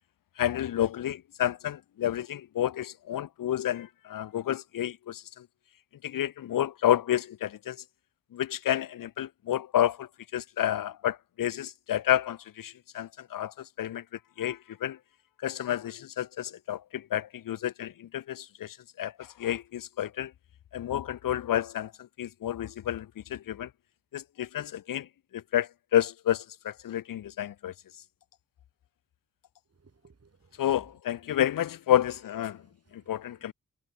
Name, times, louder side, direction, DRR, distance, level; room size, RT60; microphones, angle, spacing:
voice 1, 0.4-5.5 6.0-7.8 8.3-14.0 14.4-15.0 15.4-20.3 20.7-23.7 24.1-25.1 25.3-27.7 30.6-32.6 32.9-33.5, left 11 dB, 70° left, 0.5 m, -30 dB
voice 2, 29.7-30.6 32.5-33.5, right 4 dB, 45° right, 5.1 m, -63 dB
wide cardioid pair, 130°, 34 cm